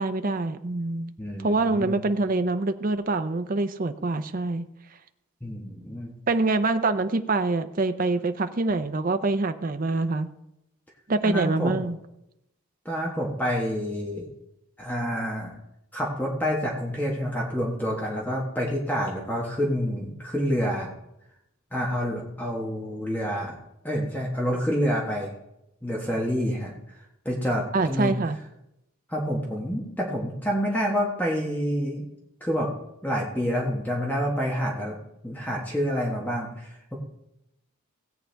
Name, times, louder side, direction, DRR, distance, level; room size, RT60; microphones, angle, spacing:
voice 1, 0.0-1.1 1.4-4.6 6.3-10.3 11.1-12.0 27.7-28.4, right 3 dB, 40° right, 9 dB, 0.5 m, -25 dB
voice 2, 1.2-2.0 5.4-6.1 11.2-11.8 12.8-14.2 14.8-15.6 15.9-20.9 21.7-23.5 23.8-25.3 25.8-26.7 27.2-28.1 29.1-32.1 32.4-32.7 33.0-34.9 35.2-37.0, equal, 10° left, -3 dB, 1.4 m, -28 dB
17.0 x 8.3 x 3.4 m, 0.85 s
head